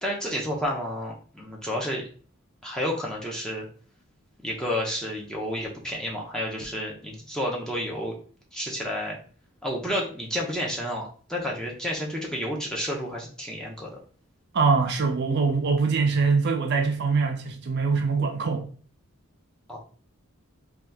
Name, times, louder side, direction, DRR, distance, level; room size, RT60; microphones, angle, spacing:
voice 1, 0.0-2.0 2.6-3.7 4.4-8.2 8.5-9.2 9.6-14.0 19.7-19.8, equal, 5° left, 0.5 m, -30 dB
voice 2, 14.5-18.7, right 4 dB, 50° right, 0.4 m, -23 dB
2.7 x 2.3 x 3.3 m
head